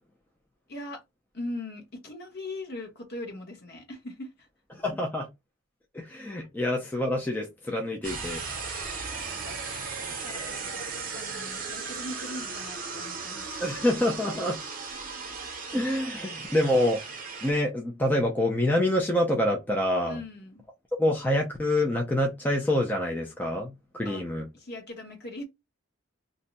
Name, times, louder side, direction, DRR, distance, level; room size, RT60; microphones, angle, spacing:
voice 1, 0.7-1.0 1.3-4.5 8.6-9.0 9.4-10.9 11.1-13.6 20.1-20.6 24.0-24.2 24.5-25.4, left 1 dB, 50° left, 1.1 m, -40 dB
voice 2, 4.7-5.3 5.9-8.4 13.6-14.6 15.7-17.0 17.4-20.2 21.0-24.5, left 1 dB, 10° left, 0.4 m, -26 dB
sound 1, 8.0-17.5, right 4 dB, 40° right, 0.7 m, -36 dB
2.6 x 2.2 x 3.9 m
head